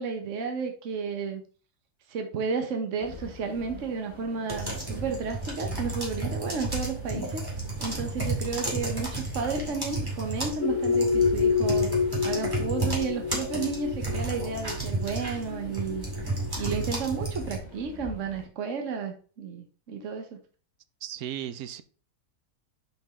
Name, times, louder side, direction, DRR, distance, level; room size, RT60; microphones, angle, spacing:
voice 1, 0.0-1.4 2.1-7.4 7.8-11.9 12.2-16.0 16.6-20.4, right 5 dB, 55° right, 4 dB, 1.3 m, -32 dB
sound 1, 3.0-18.4, left 2 dB, 15° left, 2.5 m, -45 dB
sound 2, 4.5-17.6, right 2 dB, 15° right, 2.1 m, -33 dB
sound 3, 10.6-16.8, left 6 dB, 65° left, 1.0 m, -28 dB
voice 2, 21.0-21.8, right 11 dB, 70° right, 13 dB, 1.1 m, -35 dB
6.1 x 5.3 x 3.6 m, 0.39 s
omnidirectional pair, 1.6 m